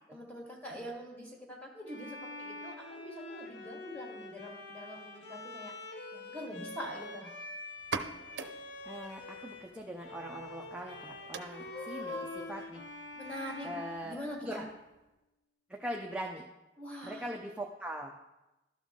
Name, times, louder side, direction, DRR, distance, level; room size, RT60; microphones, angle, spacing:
voice 1, 0.1-5.7 6.1-7.3 11.4-12.5 13.2-13.7 14.0-14.6 16.8-17.2, left 1 dB, 10° left, -2 dB, 1.9 m, -43 dB
Bowed string instrument, 1.9-9.7 10.0-14.8, left 2 dB, 80° left, 0.9 m, -46 dB
sound 1, 7.7-15.2, right 5 dB, 75° right, 0.6 m, -46 dB
voice 2, 8.8-12.8 13.6-14.2 14.4-14.6 15.7-16.4 17.0-18.1, equal, 5° right, 0 dB, 0.5 m, -41 dB
12.5 x 5.6 x 3.6 m, 0.98 s
head